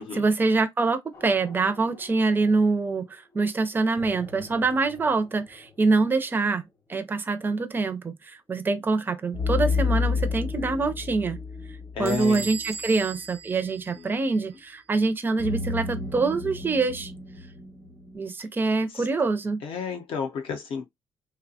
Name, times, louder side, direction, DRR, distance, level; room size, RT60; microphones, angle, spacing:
voice 1, 0.0-11.4 12.0-17.1 18.1-19.6, right 3 dB, 20° right, 0.4 m, -25 dB
sound 1, 1.1-2.9 4.0-6.1 9.3-13.1 15.4-18.3, left 4 dB, 30° left, 0.8 m, -32 dB
voice 2, 11.9-12.5 13.9-14.1 18.9-19.1 19.6-20.8, left 6 dB, 60° left, 0.6 m, -32 dB
Bell / Door, 12.1-14.6, right 6 dB, 75° right, 0.5 m, -39 dB
2.8 x 2.1 x 2.7 m
cardioid pair, 130°, 10 cm